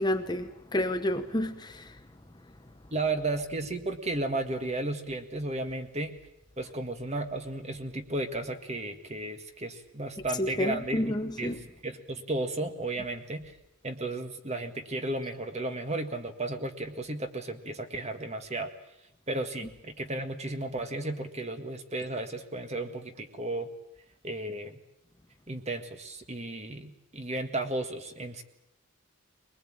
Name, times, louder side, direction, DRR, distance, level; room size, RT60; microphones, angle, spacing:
voice 1, 0.0-1.9 10.4-11.6, left 1 dB, 20° left, 1.0 m, -30 dB
voice 2, 2.9-6.2 6.6-11.5 11.8-13.5 13.8-18.7 19.3-23.7 24.2-24.8 25.5-28.4, right 2 dB, 35° right, 1.7 m, -34 dB
22.5 x 20.5 x 8.8 m
head